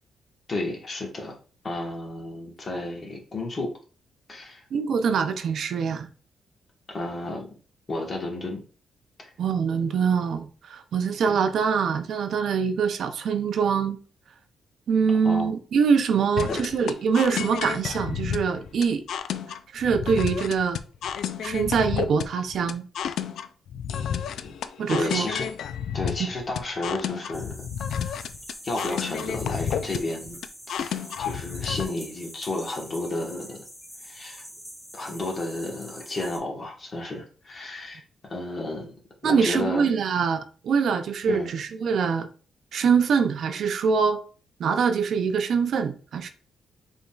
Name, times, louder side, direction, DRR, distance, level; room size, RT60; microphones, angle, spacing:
voice 1, 0.5-1.4 1.6-3.7 4.3-4.6 6.9-7.5 7.9-8.6 11.2-11.4 15.2-15.5 16.5-16.6 24.9-25.5 25.9-27.6 27.9-28.1 28.6-30.4 30.7-33.6 34.0-34.4 34.9-38.9 39.2-39.9 41.3-41.5, left 2 dB, 35° left, 1.3 m, -32 dB
voice 2, 4.7-6.1 9.4-14.0 14.9-19.0 19.5-20.8 21.4-22.9 24.8-25.3 26.2-26.3 39.2-42.3 42.7-44.2 44.6-46.3, right 6 dB, 65° right, 0.5 m, -24 dB
sound 1, 16.4-31.8, left 8 dB, 70° left, 0.3 m, -31 dB
sound 2, 27.3-36.4, equal, 5° left, 1.8 m, -44 dB
5.0 x 3.6 x 2.3 m
cardioid pair, 115°, 0 cm